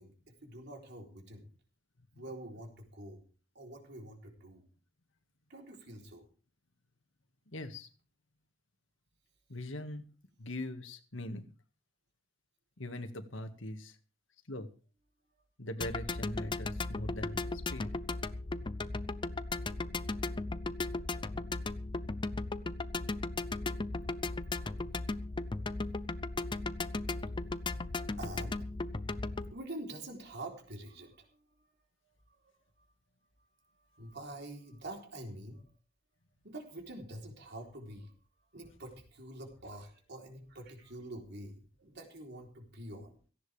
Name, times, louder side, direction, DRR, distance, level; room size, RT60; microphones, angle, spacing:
voice 1, 0.0-1.5 2.2-3.2 3.5-4.6 5.5-6.3 23.6-23.7 24.3-24.4 25.6-25.8 28.2-28.7 28.9-29.1 29.5-31.7 32.0-32.9 33.4-35.7 36.4-38.1 38.5-43.2, right 1 dB, 60° right, 2 dB, 3.7 m, -47 dB
voice 2, 7.5-7.9 9.5-10.0 10.4-11.5 12.8-14.0 14.5-14.7 15.6-17.9, left 1 dB, 75° left, 8 dB, 1.9 m, -41 dB
sound 1, 15.8-29.5, left 3 dB, 25° left, 0.6 m, -36 dB
17.0 x 15.5 x 3.5 m, 0.37 s
head